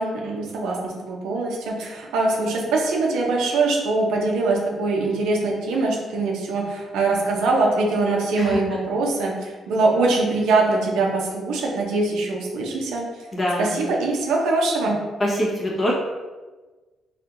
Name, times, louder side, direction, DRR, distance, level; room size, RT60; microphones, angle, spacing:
voice 1, 0.0-13.0 13.6-15.0, right 3 dB, 85° right, -1 dB, 0.8 m, -23 dB
voice 2, 13.3-13.9 15.2-15.9, equal, 25° left, -5 dB, 1.3 m, -24 dB
4.4 x 3.3 x 2.6 m, 1.3 s
cardioid pair, 90°, 0 cm